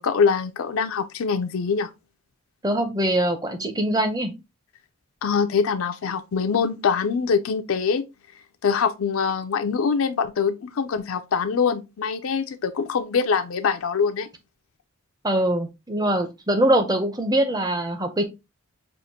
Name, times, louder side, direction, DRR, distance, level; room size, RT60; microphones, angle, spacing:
voice 1, 0.0-1.9 5.2-8.0 8.6-14.3, left 6 dB, 75° left, 0.4 m, -24 dB
voice 2, 2.6-4.3 15.2-18.2, right 1 dB, 20° right, 0.6 m, -23 dB
6.2 x 2.5 x 2.8 m
head